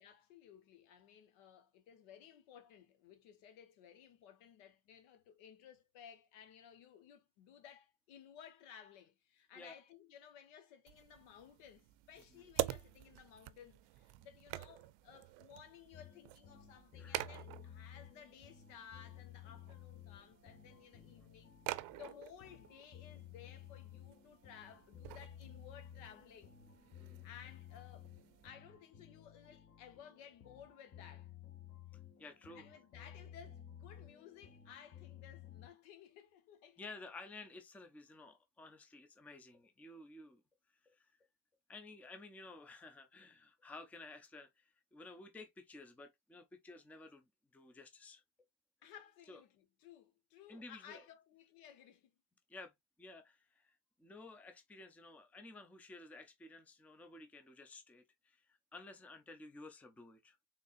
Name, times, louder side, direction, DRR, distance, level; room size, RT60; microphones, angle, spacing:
voice 1, 0.0-21.5 21.9-26.6 27.2-31.3 32.5-36.9 48.8-52.1, left 8 dB, 90° left, 1.3 m, -58 dB
sound 1, 10.9-28.5, right 17 dB, 75° right, 0.6 m, -48 dB
sound 2, 15.9-35.7, left 10 dB, 30° left, 0.8 m, -55 dB
voice 2, 16.9-17.3 27.0-27.3 32.2-32.7 36.8-40.4 40.8-41.1 41.7-48.2 49.3-49.4 50.5-51.0 52.5-52.7 53.0-60.4, left 2 dB, 5° left, 0.4 m, -54 dB
4.0 x 3.7 x 2.5 m
cardioid pair, 135°, 45 cm